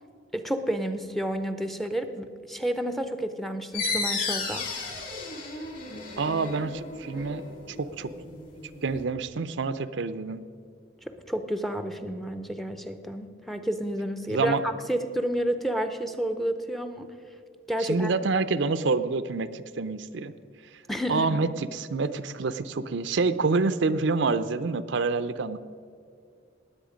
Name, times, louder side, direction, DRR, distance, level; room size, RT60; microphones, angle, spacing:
voice 1, 0.3-4.9 11.0-17.1 17.7-18.1 20.9-21.5, right 1 dB, ahead, 8 dB, 0.6 m, -30 dB
sound 1, 3.7-9.0, left 4 dB, 45° left, 3.0 m, -34 dB
voice 2, 6.2-7.4 7.8-8.1 8.8-10.4 14.3-14.6 17.9-20.3 21.1-25.6, right 4 dB, 65° right, 12 dB, 0.5 m, -27 dB
19.5 x 7.9 x 5.1 m, 2.4 s
head